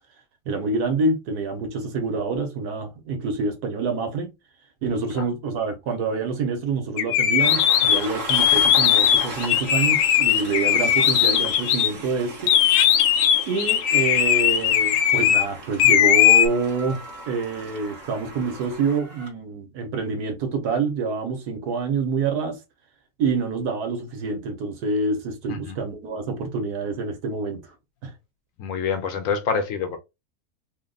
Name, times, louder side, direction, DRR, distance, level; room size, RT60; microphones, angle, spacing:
voice 1, 0.5-4.3 4.8-12.5 13.5-22.6 23.2-27.6 28.0-28.1, right 4 dB, 90° right, 1.5 m, -27 dB
sound 1, 7.0-11.9 12.5-15.4 15.8-16.5, left 10 dB, 90° left, 1.2 m, -18 dB
Train, 7.4-19.3, right 2 dB, 55° right, 1.4 m, -37 dB
voice 2, 28.6-30.0, left 5 dB, 65° left, 0.9 m, -26 dB
3.8 x 2.2 x 3.8 m
omnidirectional pair, 1.6 m